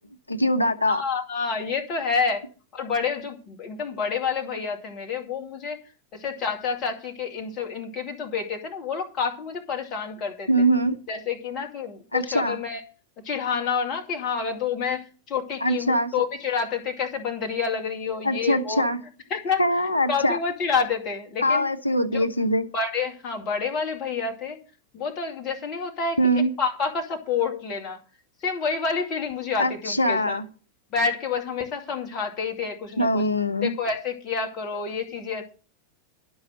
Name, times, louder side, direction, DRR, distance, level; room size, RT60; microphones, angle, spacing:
voice 1, 0.3-1.0 10.5-11.0 12.1-12.6 15.6-16.1 18.2-19.0 19.6-20.4 21.4-22.7 26.2-26.5 29.6-30.4 33.0-33.8, equal, 85° left, 0.9 m, -22 dB
voice 2, 0.9-2.4 2.7-5.8 6.1-10.5 11.1-12.8 13.2-18.8 19.3-19.6 20.1-21.7 22.1-22.2 22.7-24.6 24.9-26.2 26.6-28.0 28.4-30.4 30.9-33.3 33.6-35.5, left 5 dB, 35° left, 2.2 m, -28 dB
11.5 x 5.6 x 7.7 m
figure-of-eight pair, 90°, 0 cm